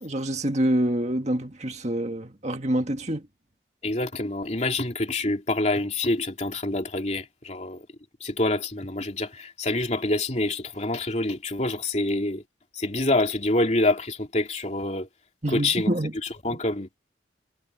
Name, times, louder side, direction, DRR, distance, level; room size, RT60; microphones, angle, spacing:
voice 1, 0.0-3.3 15.4-16.1, right 1 dB, 35° right, 1.9 m, -26 dB
voice 2, 3.8-7.9 8.2-12.4 12.7-15.1 15.5-15.9 16.4-16.9, left 2 dB, 35° left, 2.8 m, -26 dB
head